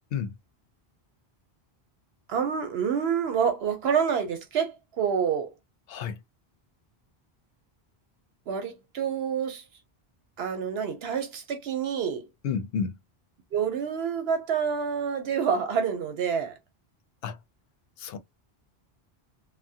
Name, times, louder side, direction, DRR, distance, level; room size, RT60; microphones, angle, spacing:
voice 1, 2.3-5.5 8.5-9.6 10.4-12.3 13.5-16.6, right 7 dB, 80° right, 0.8 m, -27 dB
voice 2, 5.9-6.2 12.4-13.0 17.2-17.4 18.0-18.2, left 6 dB, 70° left, 0.8 m, -30 dB
3.5 x 2.1 x 2.7 m
omnidirectional pair, 1.0 m